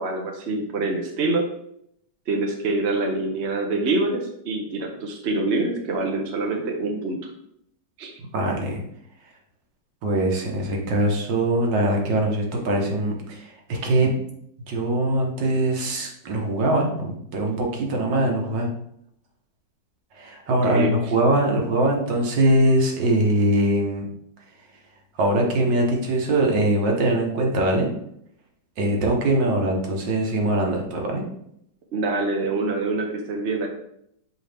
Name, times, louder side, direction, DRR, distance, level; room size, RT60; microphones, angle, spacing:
voice 1, 0.0-1.4 2.3-7.2 8.0-8.2 20.5-20.9 28.9-29.0 31.9-33.7, right 2 dB, 50° right, 2 dB, 0.8 m, -25 dB
voice 2, 8.3-8.8 10.0-14.1 14.7-18.7 20.2-24.1 25.2-27.9 28.8-31.2, right 1 dB, 75° right, 1 dB, 1.9 m, -22 dB
7.0 x 4.7 x 3.4 m, 0.73 s
omnidirectional pair, 2.0 m